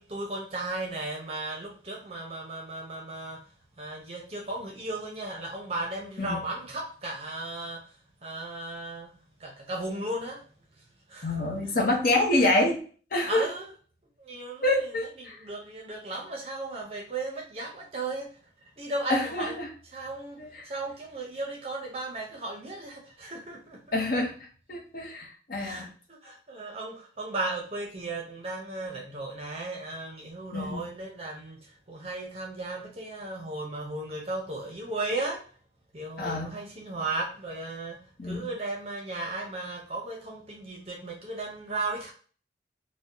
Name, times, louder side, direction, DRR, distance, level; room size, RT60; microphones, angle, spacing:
voice 1, 0.0-3.4 3.8-7.8 8.2-9.1 9.4-10.4 11.1-11.4 13.3-13.7 14.2-14.9 15.2-18.3 18.8-19.5 19.9-20.4 20.6-24.0 25.6-35.4 35.9-38.0 38.2-42.1, right 2 dB, 30° right, -1 dB, 0.6 m, -35 dB
voice 2, 11.2-12.8 13.1-13.5 14.6-15.4 19.1-19.7 20.4-20.7 23.9-25.9 30.5-30.9 36.2-36.5 38.2-38.5, left 2 dB, 50° left, 0 dB, 0.7 m, -27 dB
2.7 x 2.1 x 3.6 m, 0.42 s
head